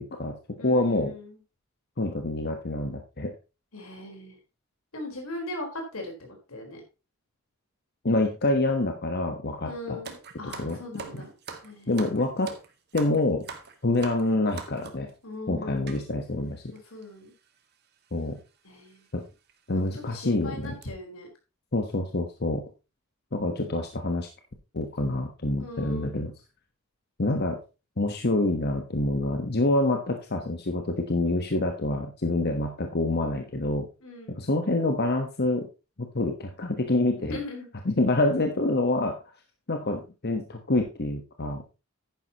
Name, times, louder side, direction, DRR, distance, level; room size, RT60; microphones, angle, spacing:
voice 1, 0.0-1.1 2.0-3.3 8.0-10.0 10.6-10.8 11.1-11.2 11.9-12.5 12.9-13.4 13.8-15.1 15.5-16.6 18.1-18.4 19.1-19.3 19.7-20.7 21.7-22.6 23.3-24.3 24.7-26.3 27.2-27.6 28.0-33.9 34.3-35.7 36.1-37.4 37.8-39.2 39.7-41.8, left 2 dB, 50° left, 4 dB, 1.2 m, -26 dB
voice 2, 0.6-1.4 3.7-4.4 4.9-6.1 6.5-6.8 9.6-11.3 11.6-12.0 15.2-16.0 16.7-17.3 18.6-19.1 19.7-21.3 25.6-26.2 34.0-34.4 37.3-37.7, left 2 dB, 85° left, 2 dB, 4.2 m, -39 dB
sound 1, 10.0-15.1 15.9-16.0 16.8-16.9 17.0-17.2 18.2-18.4 18.9-19.0 19.5-19.6 20.0-20.3 20.6-20.8, right 5 dB, 50° right, 1.6 m, -42 dB
10.5 x 10.0 x 2.9 m, 0.29 s
head